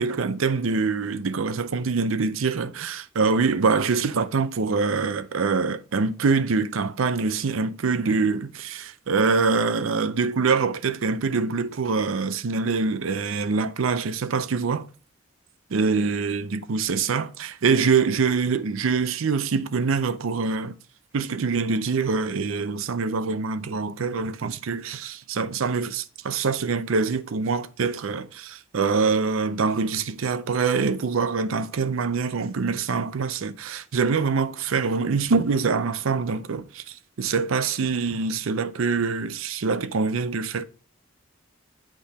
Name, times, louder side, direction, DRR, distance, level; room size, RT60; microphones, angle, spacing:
voice 1, 0.0-14.9 15.7-20.8 21.1-40.6, right 4 dB, 90° right, 0.5 m, -24 dB
8.5 x 3.0 x 4.1 m
head